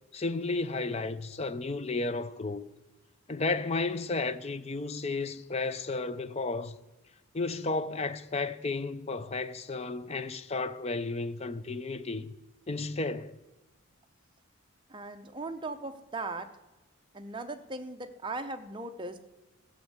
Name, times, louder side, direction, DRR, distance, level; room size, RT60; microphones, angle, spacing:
voice 1, 0.1-2.7 3.3-6.8 7.3-12.3 12.7-13.4, left 3 dB, 30° left, 0.5 m, -33 dB
voice 2, 14.9-16.5 17.1-19.2, right 2 dB, 20° right, 0.7 m, -38 dB
14.0 x 6.3 x 8.1 m
head